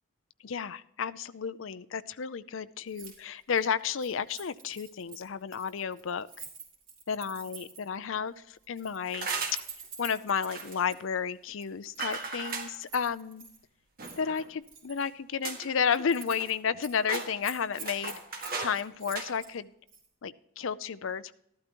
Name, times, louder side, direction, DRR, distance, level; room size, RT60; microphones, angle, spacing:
voice 1, 0.4-6.4 7.1-9.3 10.0-13.5 14.2-19.7 20.2-21.3, left 6 dB, 80° left, 14 dB, 0.5 m, -32 dB
Keys jangling, 2.9-3.2 3.4-8.0 8.6-11.0 11.6-13.6 14.0-15.1 15.4-15.6 15.9-16.5 16.8-19.5 19.9-20.1, right 5 dB, 75° right, 3.8 m, -47 dB
sound 1, 9.1-9.7 10.5-10.8 12.0-12.7 14.0-14.5 15.0-15.1 15.4-15.7 16.0-16.7 17.0-18.8 19.1-19.3, right 4 dB, 45° right, 1.8 m, -36 dB
13.5 x 12.0 x 3.0 m, 0.76 s
head